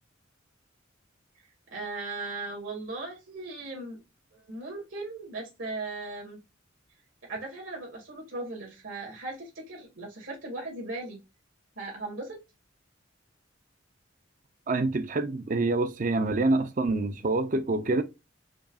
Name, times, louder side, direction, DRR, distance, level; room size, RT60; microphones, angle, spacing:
voice 1, 1.7-4.0 4.5-6.4 7.2-11.2 11.8-12.4, right 2 dB, 75° right, 2.0 m, -37 dB
voice 2, 14.7-18.0, right 2 dB, 40° right, 0.5 m, -26 dB
5.1 x 2.3 x 2.5 m
head